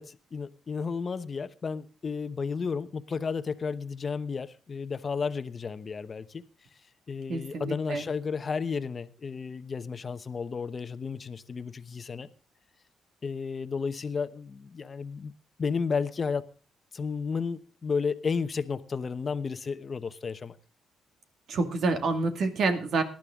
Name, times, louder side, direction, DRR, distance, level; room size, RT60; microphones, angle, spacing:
voice 1, 0.0-6.5 7.1-12.3 13.2-15.3 15.6-16.5 16.9-20.6, left 5 dB, 40° left, 1.0 m, -32 dB
voice 2, 7.3-8.1 21.5-23.0, right 3 dB, 60° right, 2.2 m, -28 dB
19.0 x 12.0 x 3.7 m
cardioid pair, 90°, 0 cm